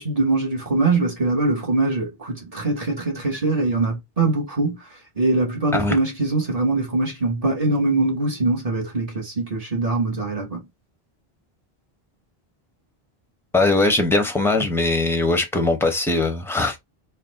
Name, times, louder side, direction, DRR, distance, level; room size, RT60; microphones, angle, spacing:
voice 1, 0.0-4.8 5.2-10.6, right 2 dB, 35° right, 1.3 m, -22 dB
voice 2, 13.5-16.8, left 2 dB, 5° left, 0.7 m, -20 dB
4.2 x 2.1 x 3.9 m
omnidirectional pair, 1.1 m